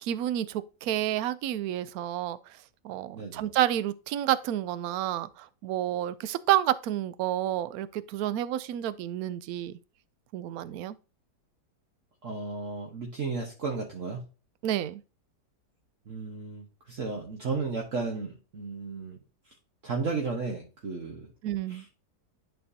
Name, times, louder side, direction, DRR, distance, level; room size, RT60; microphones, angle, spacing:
voice 1, 0.0-2.4 2.8-9.8 10.3-10.9 14.6-15.0 21.4-21.8, right 12 dB, 70° right, 1.0 m, -30 dB
voice 2, 3.1-3.4 12.2-14.2 16.1-19.2 19.8-21.3 21.7-21.9, right 4 dB, 50° right, 1.5 m, -34 dB
11.0 x 4.4 x 2.8 m
omnidirectional pair, 1.7 m